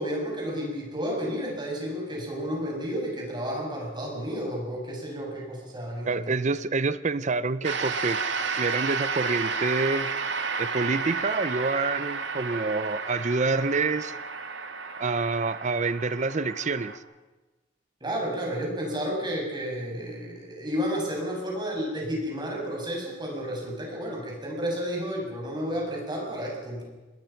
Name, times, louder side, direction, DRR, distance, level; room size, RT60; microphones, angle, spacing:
voice 1, 0.0-6.2 18.0-26.8, equal, 25° right, -1 dB, 7.3 m, -31 dB
voice 2, 6.1-8.2 8.6-10.1 10.6-14.1 15.0-16.9, right 3 dB, 40° right, 14 dB, 0.6 m, -27 dB
sound 1, 7.6-17.0, right 5 dB, 70° right, 2.0 m, -32 dB
26.0 x 20.5 x 5.9 m, 1.2 s
head